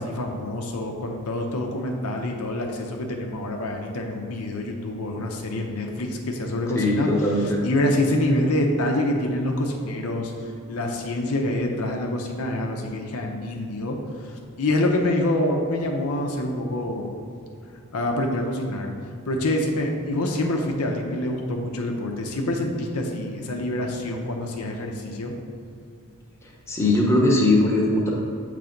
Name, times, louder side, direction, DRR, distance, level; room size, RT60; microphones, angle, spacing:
voice 1, 0.0-7.1 7.4-17.1 17.9-18.9 19.2-25.3, left 1 dB, 75° left, 2 dB, 0.7 m, -26 dB
voice 2, 6.7-7.6 26.7-28.1, left 1 dB, 10° left, -3 dB, 0.9 m, -20 dB
7.0 x 3.4 x 5.1 m, 2.5 s
head